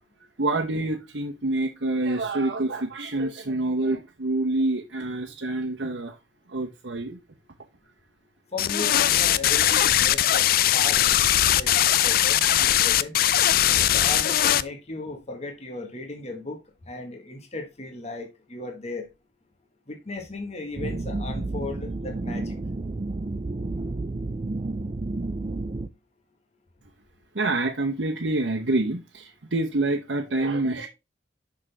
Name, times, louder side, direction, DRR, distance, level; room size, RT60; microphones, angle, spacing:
voice 1, 0.4-6.2 6.5-7.2 27.3-30.9, right 2 dB, 85° right, 1.0 m, -27 dB
voice 2, 8.5-11.0 11.6-11.7 12.0-13.2 13.8-19.1 19.9-22.6, left 2 dB, 35° left, 1.3 m, -36 dB
sound 1, 8.6-14.6, left 12 dB, 55° left, 0.4 m, -20 dB
sound 2, 20.8-25.9, right 2 dB, 35° right, 0.4 m, -31 dB
6.2 x 6.0 x 3.3 m
head